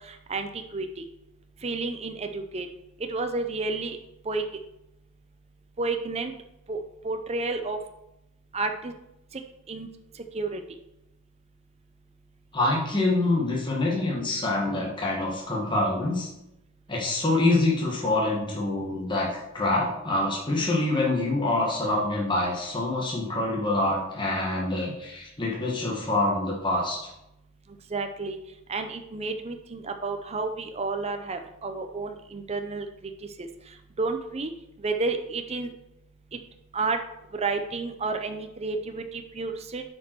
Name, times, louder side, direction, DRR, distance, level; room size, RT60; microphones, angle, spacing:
voice 1, 0.1-0.9 1.6-2.7 3.1-4.0 4.3-4.4 5.8-6.3 6.7-6.8 7.0-7.8 8.5-8.9 9.7-9.9 10.3-10.6 27.9-28.4 28.7-32.9 34.0-34.5 34.8-35.7 36.3-36.4 36.7-37.0 37.3-39.8, right 3 dB, 30° right, 6 dB, 0.6 m, -30 dB
voice 2, 12.5-16.3 16.9-27.1, left 2 dB, 20° left, -3 dB, 1.4 m, -26 dB
8.3 x 5.3 x 4.5 m, 0.87 s
head